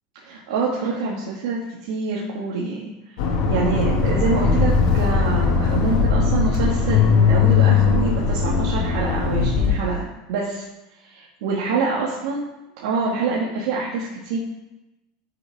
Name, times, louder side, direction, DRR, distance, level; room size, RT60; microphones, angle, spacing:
voice 1, 0.1-10.7 11.0-12.5 12.8-14.4, right 4 dB, 75° right, -3 dB, 1.9 m, -26 dB
Accelerating revving vroom, 3.2-9.8, left 5 dB, 70° left, 2.1 m, -19 dB
13.5 x 6.9 x 3.6 m, 1.0 s
supercardioid pair, 145°, 3 cm